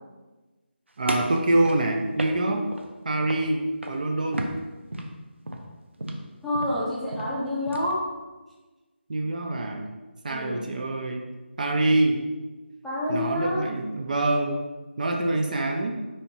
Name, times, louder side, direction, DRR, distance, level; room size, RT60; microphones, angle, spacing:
voice 1, 1.0-2.7 3.0-4.5 9.1-9.9 10.2-11.3 11.6-12.2 13.1-14.6 15.0-15.9, right 2 dB, 45° right, 3 dB, 0.5 m, -25 dB
sound 1, 1.1-2.9 3.2-3.5 3.8-4.1 4.3-8.0, right 1 dB, 85° right, 0.7 m, -34 dB
voice 2, 6.4-8.0 10.3-10.6 12.8-13.6, left 1 dB, ahead, -11 dB, 0.6 m, -28 dB
4.4 x 4.3 x 2.7 m, 1.2 s
figure-of-eight pair, 165°, 6 cm